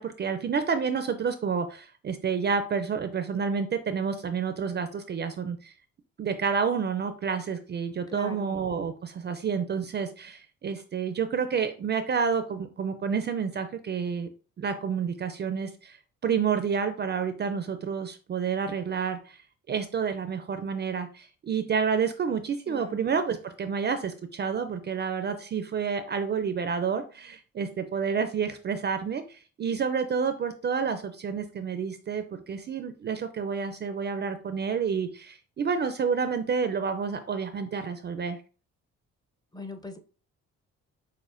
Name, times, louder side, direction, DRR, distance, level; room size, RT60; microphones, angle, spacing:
voice 1, 0.0-5.7 6.2-14.3 14.6-16.0 16.2-19.4 19.7-38.4, right 6 dB, 35° right, 0.4 m, -29 dB
voice 2, 8.1-8.6 22.7-23.1 39.5-40.0, left 2 dB, 15° left, 0.6 m, -40 dB
6.1 x 2.1 x 2.5 m
cardioid pair, 90°, 30 cm